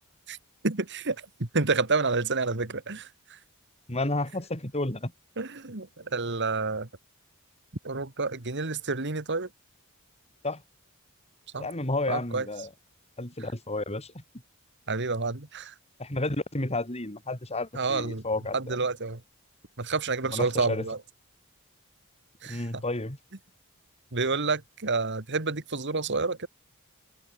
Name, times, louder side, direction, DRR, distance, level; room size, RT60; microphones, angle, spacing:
voice 1, 0.6-3.4 5.4-6.9 7.8-9.5 11.5-11.7 12.1-12.5 14.9-15.7 17.7-18.2 18.5-19.2 19.8-21.0 22.4-22.8 24.1-26.5, right 3 dB, 55° right, 2.2 m, -29 dB
voice 2, 3.9-5.1 10.4-10.6 11.6-12.7 13.2-14.2 16.0-18.8 20.3-20.8 22.4-23.2, left 2 dB, 30° left, 4.8 m, -31 dB
head